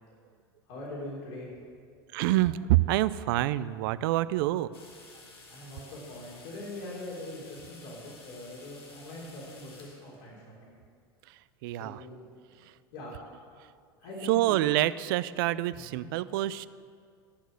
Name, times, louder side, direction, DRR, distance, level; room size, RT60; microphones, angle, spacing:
voice 1, 0.7-1.5 5.5-10.7 11.7-12.2 12.9-13.2 14.0-14.6 15.7-16.1, left 1 dB, 70° left, -5 dB, 3.3 m, -42 dB
voice 2, 2.1-4.7 11.3-12.1 12.6-12.7 14.2-16.7, right 15 dB, 65° right, 17 dB, 0.4 m, -27 dB
sound 1, 4.7-10.2, left 3 dB, 90° left, 1.8 m, -52 dB
11.5 x 6.1 x 7.9 m, 2.2 s
hypercardioid pair, 95°, 12 cm